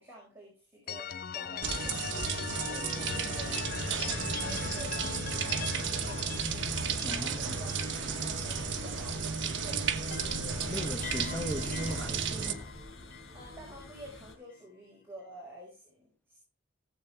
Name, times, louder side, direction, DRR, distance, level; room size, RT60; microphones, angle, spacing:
voice 1, 0.0-10.1 13.3-16.4, right 1 dB, 10° right, 5.5 m, -50 dB
sound 1, 0.9-9.6 9.9-14.0, left 6 dB, 45° left, 0.5 m, -41 dB
sound 2, 1.6-12.5, right 6 dB, 55° right, 1.3 m, -34 dB
sound 3, 3.1-14.3, left 1 dB, 70° left, 4.2 m, -43 dB
voice 2, 7.0-7.5 10.7-12.7, equal, 10° left, 1.2 m, -38 dB
17.5 x 8.1 x 3.4 m
head